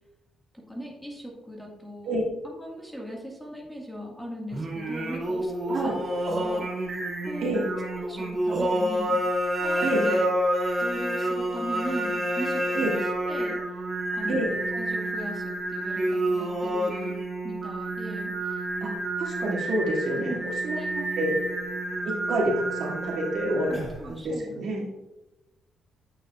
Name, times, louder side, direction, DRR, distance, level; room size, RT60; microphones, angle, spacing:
voice 1, 0.7-2.2 2.4-6.0 6.2-6.7 7.3-9.2 9.6-10.3 10.8-13.0 13.3-13.6 14.1-17.2 17.4-18.6 20.2-20.5 20.7-20.9 24.0-24.6, equal, 5° left, -2 dB, 1.8 m, -38 dB
Singing, 4.5-24.1, right 1 dB, 35° right, 2.1 m, -29 dB
voice 2, 5.7-6.0 7.4-7.7 9.8-10.1 12.7-12.9 14.3-14.5 18.8-18.9 19.2-21.3 22.0-23.7 24.0-24.9, right 1 dB, 65° right, -3 dB, 2.5 m, -28 dB
8.8 x 6.1 x 2.4 m, 0.99 s
cardioid pair, 90°, 0 cm